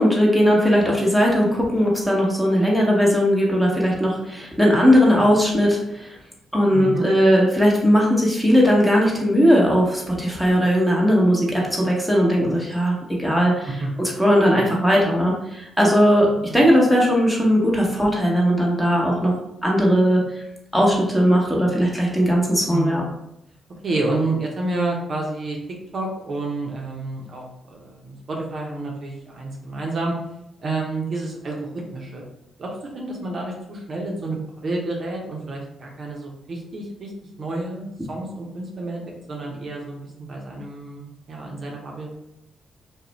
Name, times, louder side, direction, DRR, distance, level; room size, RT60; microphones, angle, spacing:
voice 1, 0.0-6.2 6.5-16.3 16.5-19.3 19.6-20.4 20.7-23.0, equal, 5° left, -3 dB, 0.9 m, -18 dB
voice 2, 6.7-7.1 13.8-13.9 16.5-16.6 22.7-23.1 23.8-25.6 25.9-30.1 30.6-32.2 32.6-37.1 37.4-39.0 39.3-40.0 40.3-42.2, right 2 dB, 55° right, -1 dB, 0.6 m, -29 dB
2.4 x 2.1 x 2.9 m, 0.82 s
supercardioid pair, 50°, 0 cm